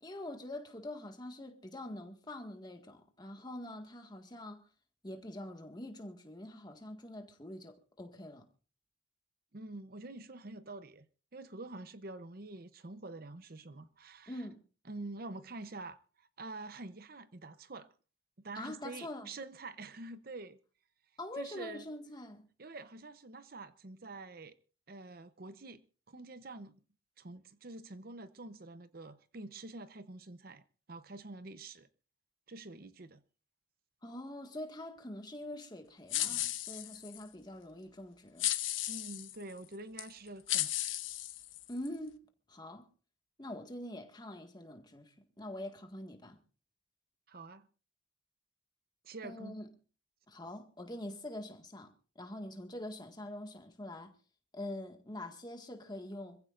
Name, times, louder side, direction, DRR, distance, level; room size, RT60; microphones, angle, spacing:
voice 1, 0.0-4.6 5.0-8.5 14.3-14.6 18.6-19.3 21.2-22.5 34.0-38.5 41.7-42.2 42.5-42.9 43.4-46.4 49.2-49.7 50.3-54.1 54.5-56.4, left 1 dB, 20° left, 1.8 m, -44 dB
voice 2, 9.5-11.1 11.3-14.5 14.8-17.9 18.4-20.6 21.4-21.8 22.6-24.5 24.9-25.8 26.1-26.8 27.2-30.6 30.9-31.9 32.5-33.2 36.3-36.5 36.8-36.9 38.9-40.7 47.3-47.7 49.0-49.5, right 2 dB, 50° right, 0.8 m, -47 dB
sound 1, 36.1-37.2 38.4-39.3 40.0-40.1 40.5-41.9, left 14 dB, 80° left, 1.1 m, -35 dB
26.5 x 15.5 x 2.6 m
head